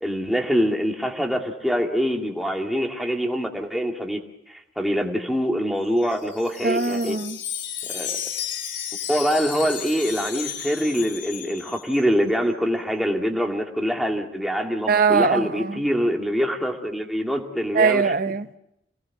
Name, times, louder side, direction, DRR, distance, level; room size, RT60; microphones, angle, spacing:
voice 1, 0.0-4.2 4.8-7.2 7.9-8.1 9.1-18.1, equal, ahead, 2.3 m, -24 dB
Wind chime, 5.8-12.1, left 9 dB, 70° left, 2.7 m, -33 dB
voice 2, 6.6-7.4 14.9-15.8 17.7-18.6, right 5 dB, 50° right, 0.9 m, -21 dB
26.5 x 18.5 x 7.3 m
head